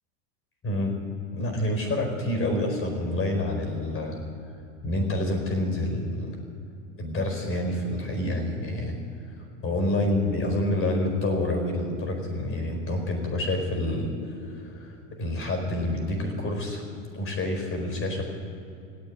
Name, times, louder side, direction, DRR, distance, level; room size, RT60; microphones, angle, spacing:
voice 1, 0.6-1.0 1.3-4.2 4.8-6.4 7.0-9.0 9.6-14.1 14.4-16.8 17.1-18.3, left 1 dB, 35° left, 4 dB, 4.6 m, -28 dB
17.0 x 8.4 x 9.7 m, 2.7 s
hypercardioid pair, 105°, 40 cm